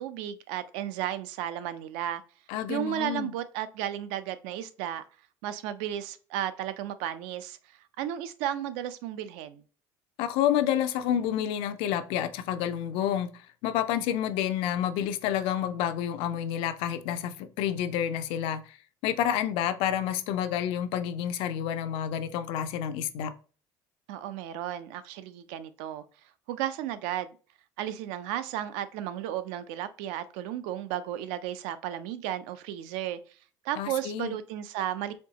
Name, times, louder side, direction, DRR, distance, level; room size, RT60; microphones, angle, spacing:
voice 1, 0.0-2.2 2.7-5.0 5.4-7.6 8.0-9.6 24.1-26.0 26.5-27.3 27.8-33.2 33.6-35.1, right 11 dB, 80° right, 0.5 m, -34 dB
voice 2, 2.5-3.3 10.2-13.3 13.6-18.8 19.0-23.3 33.8-34.4, left 10 dB, 75° left, 0.5 m, -29 dB
4.3 x 2.7 x 2.8 m
supercardioid pair, 100°, 9 cm